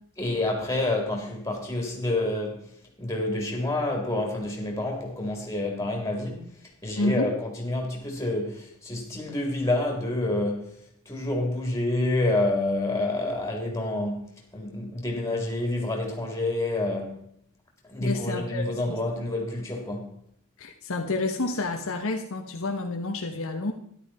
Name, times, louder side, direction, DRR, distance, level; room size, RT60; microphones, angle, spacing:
voice 1, 0.2-2.7 3.0-6.5 6.8-10.8 11.1-14.2 14.5-17.3 17.9-20.2, left 2 dB, 15° left, 3.5 m, -28 dB
voice 2, 7.0-7.3 18.0-19.0 20.6-23.7, left 2 dB, 65° left, 1.2 m, -29 dB
13.0 x 11.5 x 4.4 m
head